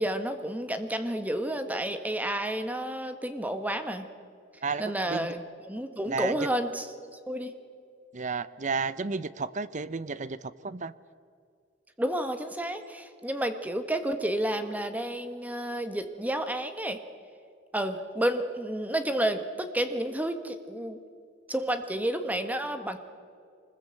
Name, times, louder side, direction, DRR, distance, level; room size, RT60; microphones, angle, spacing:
voice 1, 0.0-4.1 4.8-7.5 12.0-17.0 17.7-21.0 21.5-23.0, right 1 dB, 10° right, 8 dB, 1.4 m, -31 dB
voice 2, 4.6-5.3 6.0-6.5 8.1-10.4 10.6-10.9, right 4 dB, 40° right, 16 dB, 0.7 m, -32 dB
24.5 x 20.5 x 7.8 m, 2.3 s
head